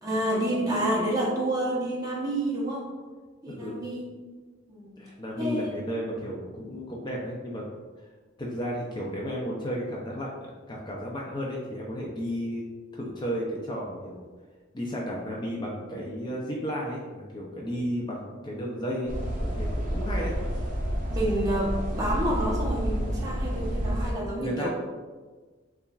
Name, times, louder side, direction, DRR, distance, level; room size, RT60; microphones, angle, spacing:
voice 1, 0.0-2.9 3.4-4.1 4.7-5.0 5.4-5.7 21.1-24.7, right 1 dB, 20° right, -5 dB, 0.9 m, -29 dB
voice 2, 3.5-3.8 5.0-7.7 8.4-12.6 12.9-14.3 14.7-19.1 19.4-20.3 24.4-24.7, equal, 25° left, -3 dB, 0.5 m, -33 dB
sound 1, 19.1-24.1, equal, 45° right, 0.7 m, -29 dB
6.8 x 2.4 x 2.3 m, 1.4 s
head